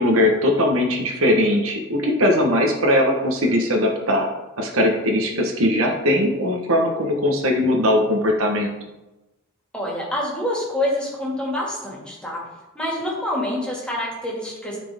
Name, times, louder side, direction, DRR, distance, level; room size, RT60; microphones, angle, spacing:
voice 1, 0.0-8.7, left 1 dB, 70° right, 2 dB, 1.1 m, -20 dB
voice 2, 9.7-12.4 12.7-14.8, left 1 dB, 5° left, -4 dB, 2.1 m, -26 dB
13.0 x 4.3 x 3.5 m, 1.0 s
head